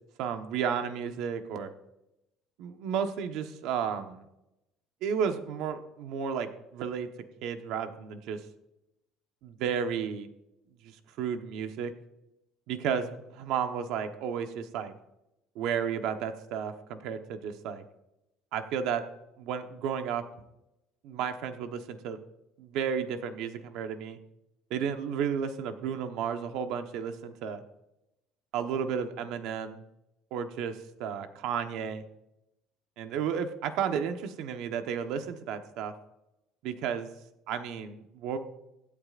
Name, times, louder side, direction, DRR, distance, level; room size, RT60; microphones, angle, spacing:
voice 1, 0.2-1.7 2.6-4.3 5.0-7.1 7.4-8.4 9.4-10.3 10.8-10.9 11.2-11.9 12.7-14.9 15.5-17.8 18.5-19.0 19.4-20.2 21.0-22.2 22.6-24.2 24.7-27.6 28.5-29.8 30.3-32.0 33.0-35.9 36.6-37.1 37.5-38.4, right 7 dB, 65° right, 7 dB, 1.1 m, -32 dB
24.5 x 8.6 x 2.5 m, 0.89 s
cardioid pair, 175°, 0 cm